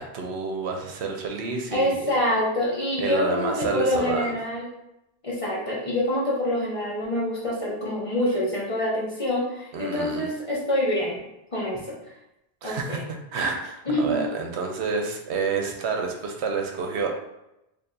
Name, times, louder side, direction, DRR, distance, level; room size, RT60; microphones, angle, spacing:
voice 1, 0.0-2.1 3.0-4.3 9.7-10.3 12.6-13.0 13.3-17.1, right 4 dB, 75° right, 2 dB, 0.9 m, -29 dB
voice 2, 1.7-4.7 5.2-11.2 11.5-12.0 12.6-13.0 13.9-14.2, left 1 dB, 35° left, -5 dB, 0.8 m, -26 dB
4.5 x 2.6 x 2.6 m, 0.88 s
omnidirectional pair, 1.1 m